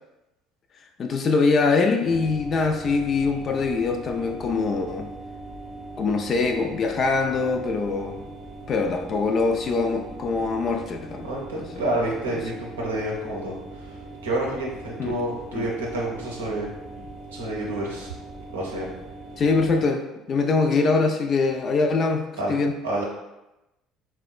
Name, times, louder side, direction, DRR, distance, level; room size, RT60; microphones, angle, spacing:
voice 1, 1.0-5.1 6.0-8.2 8.7-11.3 11.6-11.8 15.0-15.1 15.5-15.7 19.4-22.7, left 4 dB, 45° left, 5 dB, 0.4 m, -23 dB
sound 1, 2.0-19.9, right 2 dB, 40° right, 0.7 m, -40 dB
voice 2, 11.2-13.9 14.2-16.7 17.3-18.1 18.5-18.9 22.4-22.5 22.8-23.0, right 1 dB, 85° right, -3 dB, 0.7 m, -29 dB
4.1 x 2.2 x 2.3 m, 0.95 s
hypercardioid pair, 60°, 0 cm